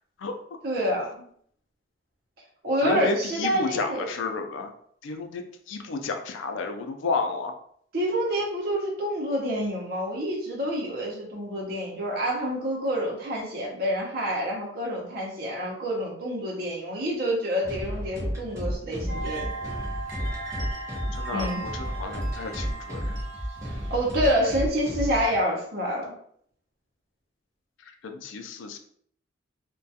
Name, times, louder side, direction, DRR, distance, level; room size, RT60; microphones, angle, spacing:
voice 1, 0.6-1.2 2.6-4.1 7.9-19.5 21.3-21.6 23.9-26.1, equal, 50° right, -3 dB, 0.7 m, -27 dB
voice 2, 2.8-4.7 5.0-5.4 5.7-7.6 21.2-23.1 28.0-28.8, left 3 dB, 80° left, 5 dB, 0.4 m, -31 dB
sound 1, 17.6-25.3, equal, 15° right, 0.7 m, -32 dB
sound 2, 19.1-24.1, right 3 dB, 85° right, 0.8 m, -37 dB
2.3 x 2.2 x 2.7 m, 0.63 s
head